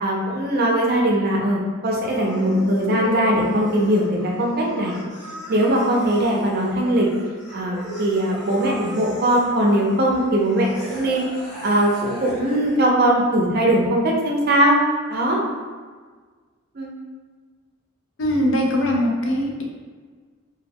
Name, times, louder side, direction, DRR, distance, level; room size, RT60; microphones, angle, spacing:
voice 1, 0.0-5.0 5.5-7.1 7.5-11.2 11.6-14.8 15.1-15.4 16.7-16.9, right 1 dB, 50° right, -1 dB, 0.5 m, -20 dB
sound 1, 2.0-12.8, equal, 40° left, 0.9 m, -37 dB
sound 2, 2.3-7.2, left 2 dB, 10° left, 0.4 m, -36 dB
voice 2, 18.2-19.6, equal, 65° left, 0 dB, 0.5 m, -21 dB
2.2 x 2.2 x 3.4 m, 1.5 s
head